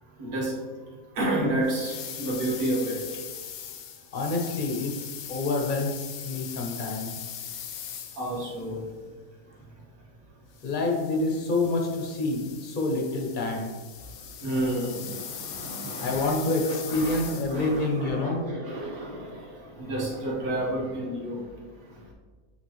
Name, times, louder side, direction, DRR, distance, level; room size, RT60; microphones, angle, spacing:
voice 1, 0.2-0.6 1.2-3.1 8.2-8.9 14.4-16.4 16.6-21.5, right 1 dB, 90° right, -4 dB, 1.9 m, -30 dB
sound 1, 1.6-8.7 10.5-17.8, left 9 dB, 80° left, 1.1 m, -40 dB
voice 2, 4.1-7.1 10.6-13.7 16.0-18.4, left 2 dB, 40° left, 0 dB, 1.0 m, -27 dB
8.8 x 3.9 x 3.1 m, 1.4 s
omnidirectional pair, 1.5 m